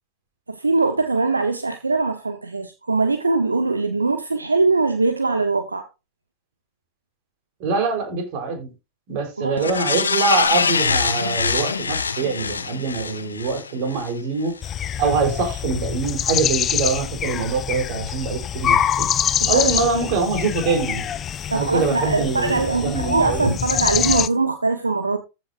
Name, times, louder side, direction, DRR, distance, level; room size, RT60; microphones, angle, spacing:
voice 1, 0.5-5.9 9.4-9.6 19.4-19.9 21.5-25.2, right 3 dB, 80° right, 1.0 m, -22 dB
voice 2, 7.6-8.7 9.1-14.6 15.0-19.1 19.5-21.1 21.5-23.5, right 4 dB, 45° right, 4.1 m, -24 dB
sound 1, 9.6-14.1 14.5-14.6, left 5 dB, 75° left, 0.9 m, -23 dB
sound 2, 14.6-24.3, left 9 dB, 25° left, 0.6 m, -25 dB
14.5 x 6.4 x 2.6 m
figure-of-eight pair, 90°, 0 cm